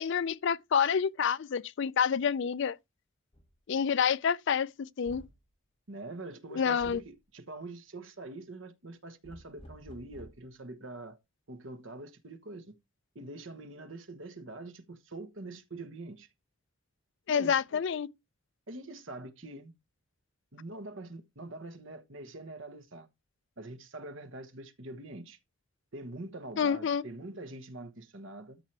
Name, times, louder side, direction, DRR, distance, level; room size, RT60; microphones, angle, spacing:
voice 1, 0.0-2.8 3.7-4.7 5.0-5.2 6.6-7.0 17.3-18.1 26.6-27.0, left 7 dB, 55° left, 0.4 m, -28 dB
sound 1, 3.3-3.5 5.0-5.4 6.8-7.1 9.2-10.5, equal, 25° left, 1.8 m, -51 dB
voice 2, 5.9-11.2 11.5-12.8 13.1-16.3 17.3-17.8 18.7-19.7 20.5-23.1 23.6-25.4 25.9-28.6, right 2 dB, 60° right, 1.2 m, -44 dB
13.0 x 4.5 x 3.3 m
head